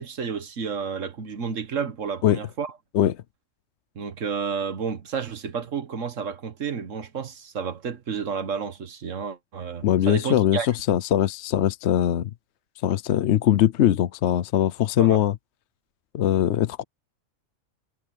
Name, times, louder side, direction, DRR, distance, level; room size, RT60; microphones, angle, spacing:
voice 1, 0.0-2.7 4.0-10.7 15.0-15.2, right 6 dB, 75° right, 1.7 m, -31 dB
voice 2, 9.8-12.3 12.8-15.4 16.1-16.8, left 11 dB, 65° left, 0.9 m, -21 dB
omnidirectional pair, 1.3 m